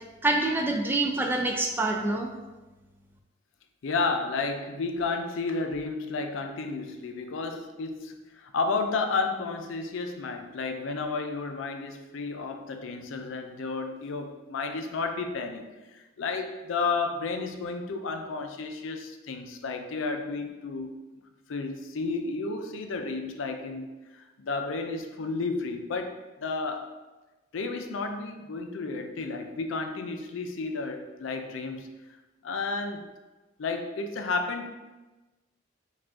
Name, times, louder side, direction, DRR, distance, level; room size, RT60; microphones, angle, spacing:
voice 1, 0.2-2.3, right 2 dB, 10° right, 2 dB, 0.3 m, -26 dB
voice 2, 3.8-15.6 15.9-21.0 21.5-27.0 27.5-31.9 32.4-33.1 33.6-34.7, left 3 dB, 70° left, 6 dB, 0.4 m, -32 dB
4.9 x 2.4 x 3.6 m, 1.1 s
head